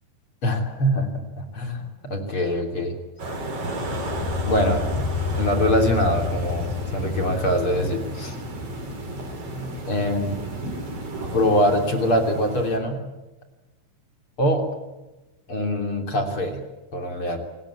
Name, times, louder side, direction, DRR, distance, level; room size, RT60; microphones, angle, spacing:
voice 1, 0.4-1.2 1.5-1.8 2.0-3.0 4.5-5.0 5.3-8.4 9.5-10.4 11.3-13.1 14.4-14.6 15.5-16.6 16.9-17.4, equal, 35° left, 4 dB, 3.3 m, -23 dB
sound 1, 3.2-12.8, right 1 dB, 35° right, 4.7 m, -33 dB
sound 2, 3.7-9.0, left 7 dB, 65° left, 4.3 m, -30 dB
28.0 x 19.5 x 8.7 m, 1.1 s
omnidirectional pair, 5.2 m